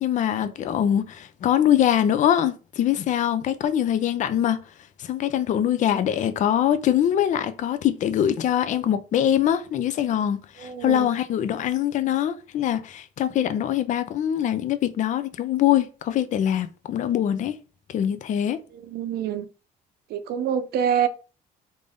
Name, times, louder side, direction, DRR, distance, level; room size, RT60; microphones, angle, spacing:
voice 1, 0.0-4.6 5.0-17.6 17.9-18.6, left 10 dB, 45° left, 0.4 m, -23 dB
voice 2, 10.6-11.1 18.9-19.5 20.1-21.1, right 8 dB, 70° right, 0.6 m, -25 dB
3.3 x 2.6 x 3.5 m
cardioid pair, 110°, 17 cm